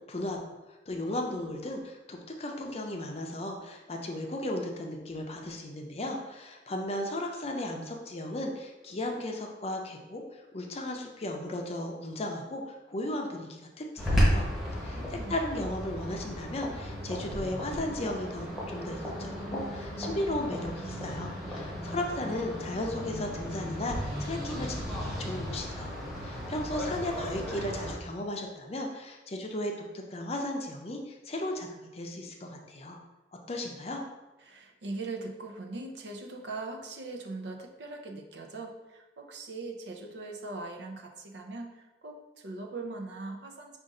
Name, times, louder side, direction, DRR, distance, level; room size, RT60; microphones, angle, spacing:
voice 1, 0.1-0.5 0.9-10.2 10.5-14.5 14.8-15.0 15.3-33.0 33.5-34.0, left 1 dB, 35° left, 2 dB, 0.5 m, -35 dB
sound 1, 14.0-27.9, equal, ahead, 1.0 m, -34 dB
voice 2, 14.9-15.3 34.4-43.8, right 3 dB, 75° right, 2 dB, 0.6 m, -40 dB
5.2 x 2.5 x 3.7 m, 1.1 s
head